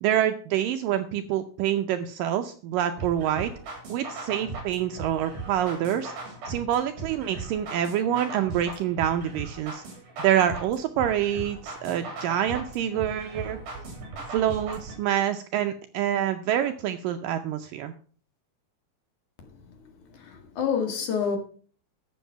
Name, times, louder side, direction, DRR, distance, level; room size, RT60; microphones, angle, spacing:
voice 1, 0.0-3.5 3.9-6.1 6.5-9.8 10.2-13.6 14.3-17.9, right 10 dB, 85° right, 1.9 m, -26 dB
sound 1, 3.0-15.0, right 3 dB, 50° right, 4.8 m, -38 dB
voice 2, 20.2-21.4, left 7 dB, 55° left, 3.0 m, -27 dB
12.5 x 7.4 x 5.7 m
omnidirectional pair, 4.7 m